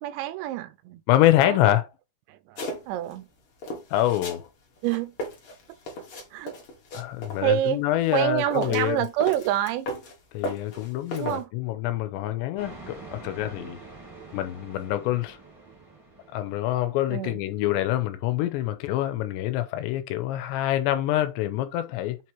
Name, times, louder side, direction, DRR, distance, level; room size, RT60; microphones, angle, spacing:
voice 1, 0.0-1.0 1.4-1.7 2.3-3.3 4.8-5.1 6.3-6.5 7.4-7.8 8.1-9.9 11.1-11.5 17.1-17.4, right 12 dB, 90° right, 2.8 m, -27 dB
voice 2, 1.1-1.8 3.9-4.5 6.9-9.0 10.3-13.8 14.3-15.4 16.3-22.2, left 14 dB, 90° left, 2.9 m, -25 dB
sound 1, 2.6-3.2 3.6-4.4 4.8-7.4 8.0-10.1 10.4-11.4, left 1 dB, 70° left, 1.2 m, -36 dB
sound 2, 12.6-17.1, right 3 dB, 25° right, 0.4 m, -45 dB
7.7 x 3.1 x 4.5 m
omnidirectional pair, 5.0 m